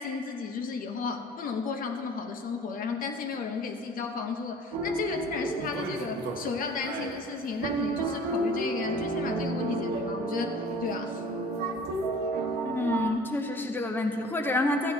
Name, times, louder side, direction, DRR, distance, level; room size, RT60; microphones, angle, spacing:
voice 1, 0.0-11.2, left 5 dB, 55° left, 5 dB, 0.9 m, -34 dB
sound 1, 4.7-6.5 6.8-13.1, right 3 dB, 85° right, 1.1 m, -31 dB
voice 2, 12.6-14.9, left 2 dB, 10° left, 4 dB, 0.7 m, -28 dB
13.5 x 8.5 x 4.1 m, 2.5 s
cardioid pair, 110°, 17 cm